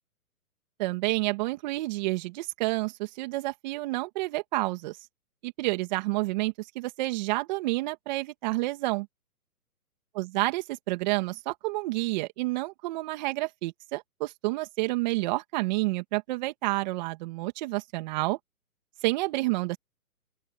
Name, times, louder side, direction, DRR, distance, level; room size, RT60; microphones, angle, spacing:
voice 1, 0.8-5.0 5.4-9.1 10.2-18.4 19.0-19.8, right 21 dB, 30° right, 2.8 m, -29 dB
open air
hypercardioid pair, 150°, 45 cm